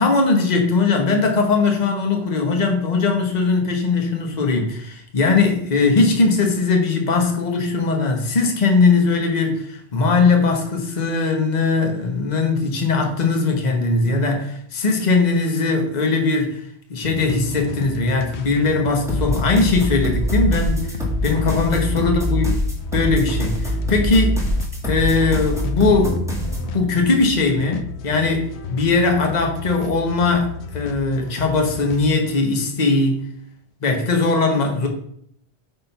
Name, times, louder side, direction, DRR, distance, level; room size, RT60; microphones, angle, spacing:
voice 1, 0.0-16.6 16.9-22.4 22.9-24.4 24.8-33.2 33.8-34.9, left 3 dB, 40° left, 2 dB, 1.2 m, -20 dB
sound 1, 17.0-32.1, left 5 dB, 85° left, 1.0 m, -34 dB
sound 2, 19.1-26.7, equal, 5° right, 1.8 m, -23 dB
8.5 x 3.7 x 5.6 m, 0.68 s
omnidirectional pair, 1.1 m